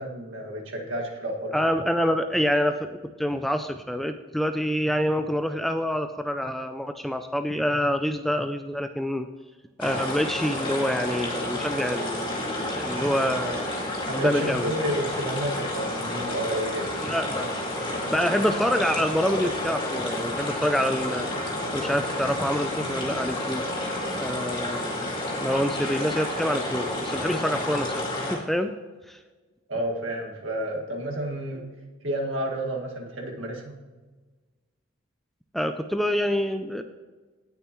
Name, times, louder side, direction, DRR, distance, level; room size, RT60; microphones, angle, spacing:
voice 1, 0.0-1.6 12.8-13.4 14.1-16.9 29.7-31.7 32.0-33.8, right 1 dB, 70° right, 0 dB, 2.0 m, -31 dB
voice 2, 1.5-9.3 9.8-13.7 14.1-14.7 17.0-17.5 18.1-21.3 21.7-23.7 24.2-25.1 25.4-28.0 28.3-28.7 29.1-29.2 35.5-36.8, equal, ahead, 7 dB, 0.4 m, -26 dB
sound 1, 9.8-28.3, left 1 dB, 25° left, 2.2 m, -30 dB
18.0 x 6.8 x 3.1 m, 1.3 s
head